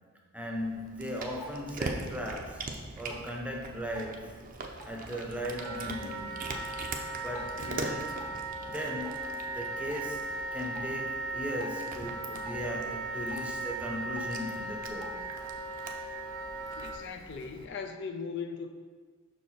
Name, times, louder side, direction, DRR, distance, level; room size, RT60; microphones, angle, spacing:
voice 1, 0.3-2.7 3.0-4.4 4.8-6.3 7.2-8.3 8.6-15.2, equal, 5° right, -1 dB, 0.7 m, -38 dB
Cat, 0.5-17.7, right 3 dB, 40° right, 0.6 m, -43 dB
Drip, 1.0-15.5, equal, 75° left, 1.6 m, -53 dB
Wind instrument woodwind instrument, 5.6-17.0, right 2 dB, 80° right, 1.0 m, -37 dB
voice 2, 16.8-18.7, left 5 dB, 55° left, 6 dB, 0.4 m, -38 dB
6.2 x 4.7 x 4.2 m, 1.5 s
head